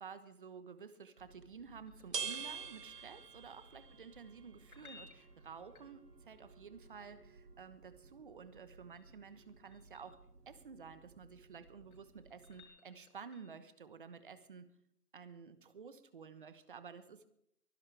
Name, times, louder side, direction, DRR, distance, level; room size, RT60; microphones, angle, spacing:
voice 1, 0.0-14.7 15.1-17.3, right 6 dB, 35° right, 12 dB, 1.2 m, -52 dB
sound 1, 1.2-12.6, right 5 dB, 85° right, 2.1 m, -50 dB
sound 2, 1.9-3.1 4.6-6.4 8.5-10.2 11.6-13.7 16.4-16.5, left 4 dB, 65° left, 7.7 m, -62 dB
23.5 x 11.5 x 3.5 m, 0.70 s
hypercardioid pair, 165°, 47 cm